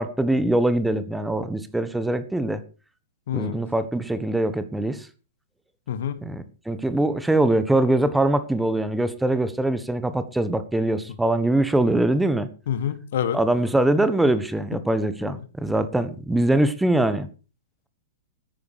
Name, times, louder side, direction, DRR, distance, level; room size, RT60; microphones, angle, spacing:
voice 1, 0.0-2.6 3.3-5.1 6.2-12.5 13.3-17.3, right 1 dB, 5° right, 1.3 m, -23 dB
voice 2, 3.3-3.6 5.9-6.2 12.7-13.4 15.2-15.4, left 9 dB, 55° left, 1.6 m, -27 dB
13.5 x 10.5 x 4.8 m
figure-of-eight pair, 105°, 0 cm